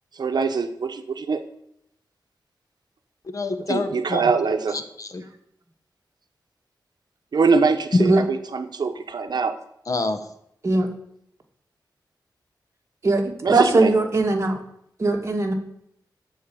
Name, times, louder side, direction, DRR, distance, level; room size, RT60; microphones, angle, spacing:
voice 1, 0.2-1.4 3.7-4.8 7.3-8.2 8.5-9.6 13.4-13.9, right 4 dB, 70° right, 8 dB, 0.9 m, -23 dB
voice 2, 3.2-4.3 4.7-5.2 8.0-8.1 9.9-10.3, left 3 dB, 50° left, 9 dB, 1.1 m, -27 dB
voice 3, 13.0-14.6 15.0-15.5, right 3 dB, 40° right, 2 dB, 1.8 m, -20 dB
13.0 x 4.6 x 8.5 m, 0.74 s
wide cardioid pair, 105°, 7 cm